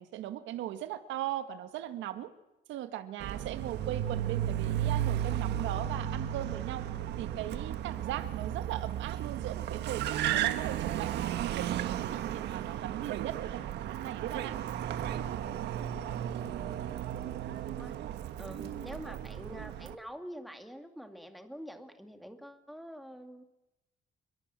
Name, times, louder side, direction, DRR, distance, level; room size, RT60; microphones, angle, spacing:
voice 1, 0.0-2.3 2.7-6.9 7.2-14.6 18.5-18.9, right 12 dB, 85° right, 9 dB, 1.9 m, -39 dB
Car, 3.2-20.0, right 11 dB, 65° right, 1.6 m, -34 dB
voice 2, 17.5-17.9 18.4-23.5, equal, ahead, 5 dB, 2.2 m, -46 dB
27.5 x 22.5 x 7.7 m, 0.96 s
cardioid pair, 175°, 19 cm